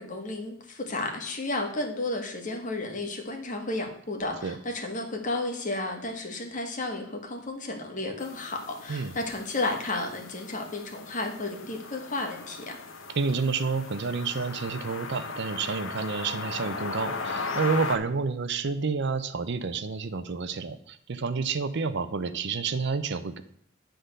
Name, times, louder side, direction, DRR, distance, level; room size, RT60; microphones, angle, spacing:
voice 1, 0.0-12.8, left 2 dB, 40° left, 3 dB, 1.5 m, -32 dB
sound 1, 8.2-18.0, left 4 dB, 80° left, 1.1 m, -37 dB
voice 2, 13.1-23.4, right 4 dB, 60° right, 11 dB, 0.6 m, -29 dB
10.0 x 3.8 x 6.5 m, 0.69 s
head